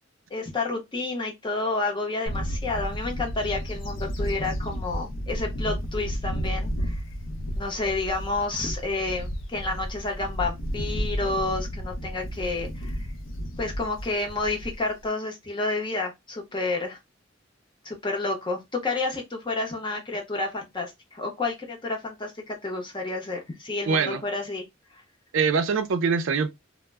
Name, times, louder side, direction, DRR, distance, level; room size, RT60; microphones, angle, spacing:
voice 1, 0.3-7.0 7.6-13.1 13.6-17.0 17.8-24.7, left 3 dB, 25° left, 0.7 m, -30 dB
Bird / Wind, 2.3-15.0, equal, 85° left, 0.6 m, -32 dB
voice 2, 23.9-24.2 25.3-26.5, right 5 dB, 85° right, 0.4 m, -23 dB
2.1 x 2.0 x 3.3 m
head